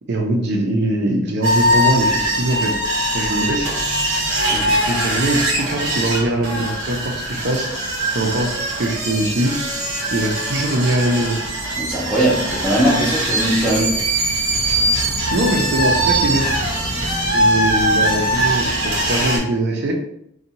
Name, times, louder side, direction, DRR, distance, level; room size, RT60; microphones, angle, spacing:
voice 1, 0.1-2.7 3.1-3.7 4.5-7.7 8.1-9.5 10.1-11.4 13.7-13.8 15.3-16.5 17.3-19.9, right 1 dB, 55° right, 1 dB, 0.5 m, -22 dB
sound 1, 1.4-19.4, right 1 dB, 85° right, 0.8 m, -21 dB
voice 2, 11.8-13.9 17.9-18.0, right 1 dB, 5° left, -9 dB, 0.5 m, -19 dB
2.6 x 2.2 x 2.8 m, 0.74 s
head